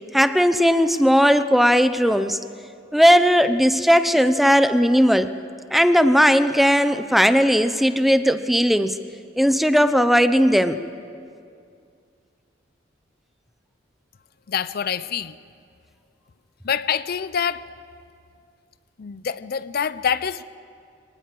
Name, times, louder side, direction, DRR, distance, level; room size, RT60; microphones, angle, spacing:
voice 1, 0.1-2.4 2.9-5.3 5.7-9.0 9.4-10.8, equal, ahead, 0.6 m, -17 dB
voice 2, 14.5-15.4 16.6-17.6 19.0-20.4, left 7 dB, 55° left, 0.5 m, -26 dB
24.0 x 18.5 x 7.7 m
head